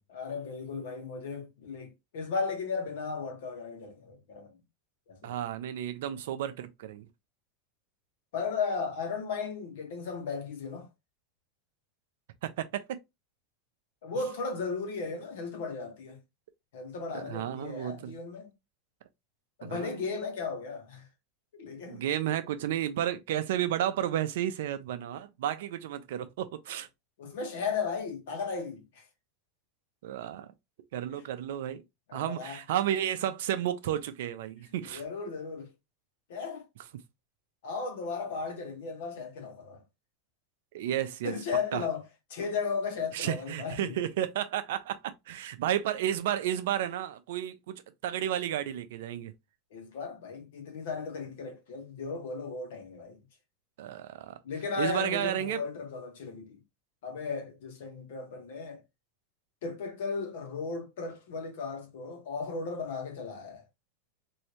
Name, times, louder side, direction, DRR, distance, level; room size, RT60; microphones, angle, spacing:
voice 1, 0.1-4.5 5.1-5.4 8.3-10.9 14.0-16.2 16.7-18.5 19.6-21.1 21.6-22.0 27.2-29.0 31.1-31.2 32.1-32.6 34.8-35.7 36.3-36.6 37.6-39.8 41.2-42.0 42.3-43.9 49.7-53.2 54.4-56.6 57.0-58.8 59.6-63.7, left 5 dB, 80° left, 1.1 m, -35 dB
voice 2, 5.2-7.1 12.4-13.0 17.1-18.1 19.6-19.9 21.9-26.9 30.0-30.5 30.9-31.8 32.1-35.0 40.7-41.3 41.7-41.8 43.1-49.3 53.8-54.4 54.8-55.6, right 11 dB, 75° right, 0.5 m, -32 dB
3.1 x 2.7 x 2.8 m
supercardioid pair, 115°, 0 cm